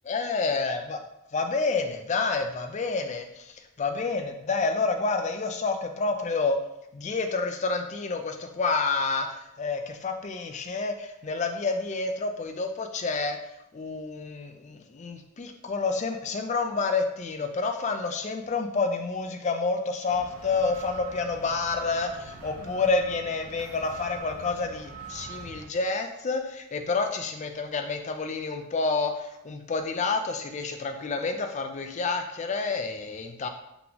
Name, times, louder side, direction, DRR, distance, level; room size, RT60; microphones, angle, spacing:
voice 1, 0.0-1.0 1.3-6.6 6.9-13.4 13.7-33.5, left 4 dB, 35° left, 6 dB, 0.4 m, -29 dB
sound 1, 20.1-25.7, right 5 dB, 80° right, 0.7 m, -43 dB
3.9 x 3.7 x 2.8 m, 0.83 s
head